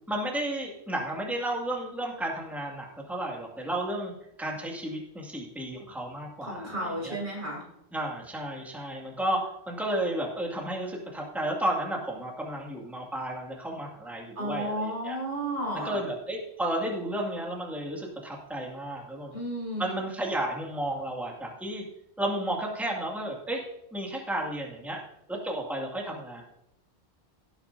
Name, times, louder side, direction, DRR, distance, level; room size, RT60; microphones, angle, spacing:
voice 1, 0.1-4.1 4.4-7.2 7.9-15.2 15.7-19.3 19.8-21.8 22.2-23.6 23.9-25.0 25.3-26.4, right 1 dB, ahead, -2 dB, 2.2 m, -32 dB
voice 2, 6.4-7.6 14.4-16.0 19.3-20.0, right 1 dB, 75° right, -3 dB, 5.5 m, -33 dB
17.5 x 8.9 x 2.7 m, 0.83 s
omnidirectional pair, 1.1 m